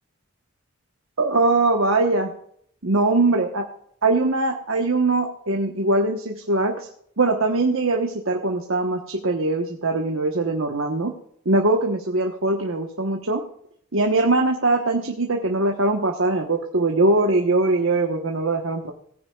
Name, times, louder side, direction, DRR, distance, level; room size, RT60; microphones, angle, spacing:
voice 1, 1.2-2.3 2.8-3.6 4.0-6.9 7.2-11.1 11.4-13.4 13.9-18.9, right 2 dB, 65° right, 2 dB, 1.2 m, -21 dB
17.0 x 9.8 x 2.4 m, 0.65 s
head